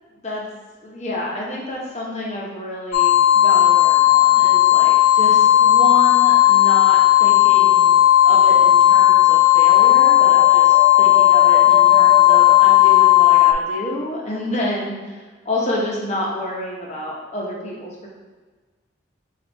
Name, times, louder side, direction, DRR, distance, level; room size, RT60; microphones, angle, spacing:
voice 1, 0.8-7.9 8.2-18.1, left 1 dB, 35° left, -3 dB, 0.8 m, -29 dB
sound 1, 2.9-13.5, left 14 dB, 55° left, 0.3 m, -13 dB
sound 2, 7.5-8.2 9.7-13.5, right 4 dB, 25° right, 0.4 m, -32 dB
4.1 x 2.4 x 4.5 m, 1.4 s
head